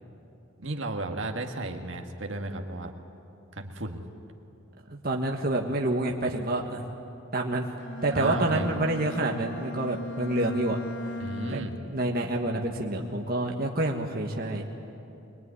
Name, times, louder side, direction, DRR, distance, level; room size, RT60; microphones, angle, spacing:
voice 1, 0.6-2.9 3.5-4.0 8.1-8.7 11.2-11.8, right 2 dB, 65° right, 3 dB, 1.7 m, -34 dB
voice 2, 4.9-6.8 7.3-7.7 8.0-10.8 11.5-11.6 11.9-14.6, right 1 dB, 45° right, 1 dB, 1.5 m, -28 dB
Bowed string instrument, 7.8-11.9, left 1 dB, 60° left, 1.4 m, -38 dB
24.0 x 22.0 x 9.7 m, 2.9 s
head